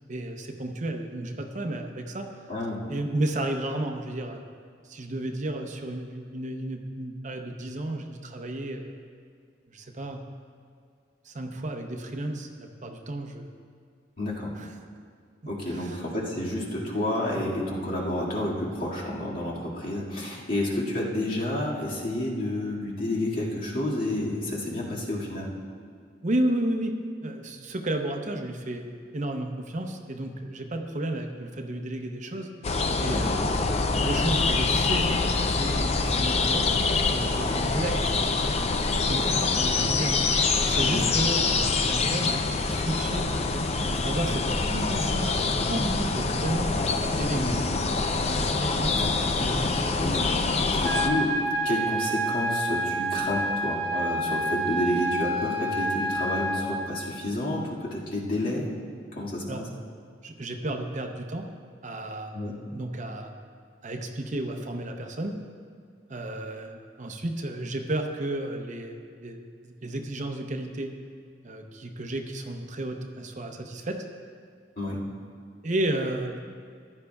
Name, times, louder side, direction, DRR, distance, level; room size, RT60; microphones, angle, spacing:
voice 1, 0.1-2.4 2.9-4.4 4.8-8.9 9.7-10.2 11.2-13.5 14.5-14.7 15.4-16.0 26.2-27.0 27.2-28.9 29.1-32.5 33.0-33.6 34.0-35.1 35.4-36.7 37.1-40.2 40.6-43.4 43.9-44.4 44.7-46.7 47.1-47.5 48.6-49.0 49.4-49.7 59.5-59.6 60.2-61.5 61.8-62.4 62.7-63.3 63.8-65.3 66.1-70.9 71.4-74.1 75.6-76.4, right 1 dB, 45° right, 4 dB, 0.7 m, -32 dB
voice 2, 14.2-14.5 15.5-25.5 33.0-33.4 40.8-41.0 47.3-47.6 48.9-49.3 49.6-51.4 51.6-58.7 59.1-59.6 62.3-62.5 74.8-75.0, left 1 dB, 55° left, -5 dB, 2.1 m, -30 dB
sound 1, 32.6-51.1, left 3 dB, 35° left, 0.5 m, -25 dB
sound 2, 50.8-56.8, right 1 dB, 20° left, 2.5 m, -28 dB
15.0 x 10.5 x 2.3 m, 2.2 s
head